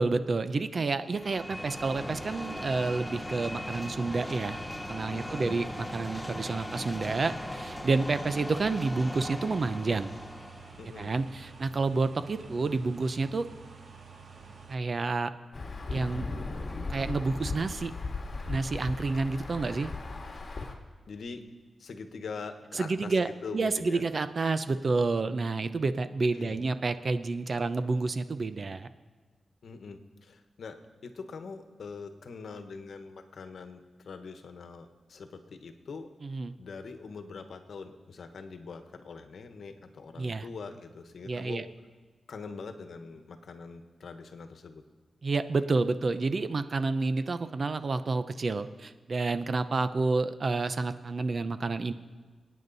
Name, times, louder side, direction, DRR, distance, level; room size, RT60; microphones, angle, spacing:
voice 1, 0.0-4.6 4.9-10.1 11.0-13.5 14.7-15.3 15.9-16.4 16.9-17.9 18.5-19.9 22.7-28.9 36.2-36.5 40.2-40.4 41.2-41.7 45.2-51.9, right 3 dB, 50° right, 11 dB, 0.7 m, -29 dB
sound 1, 1.0-10.9, left 1 dB, 10° left, 0.7 m, -39 dB
sound 2, 1.5-14.7, right 5 dB, 65° right, 1.6 m, -50 dB
voice 2, 5.1-5.6 10.8-11.1 21.1-21.4 21.8-24.0 26.3-26.7 29.6-36.1 36.6-41.6 42.3-44.8, left 4 dB, 80° left, 7 dB, 1.2 m, -43 dB
Insect / Thunder / Rain, 15.5-20.7, left 3 dB, 45° left, 2.1 m, -37 dB
28.0 x 9.4 x 4.1 m, 1.4 s
wide cardioid pair, 90°, 0 cm